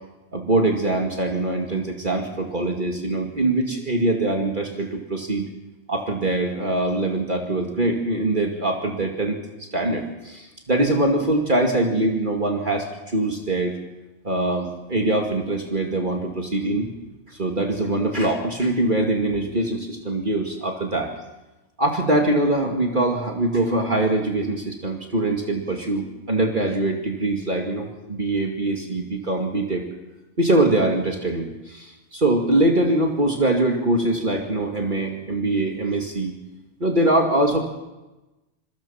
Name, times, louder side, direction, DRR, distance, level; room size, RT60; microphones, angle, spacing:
voice 1, 0.3-5.4 5.9-9.4 9.7-13.8 14.2-16.9 17.3-21.1 21.8-29.8 30.4-36.4 36.8-37.6, right 2 dB, 45° right, 1 dB, 2.5 m, -23 dB
27.0 x 22.0 x 5.8 m, 1.1 s
omnidirectional pair, 1.2 m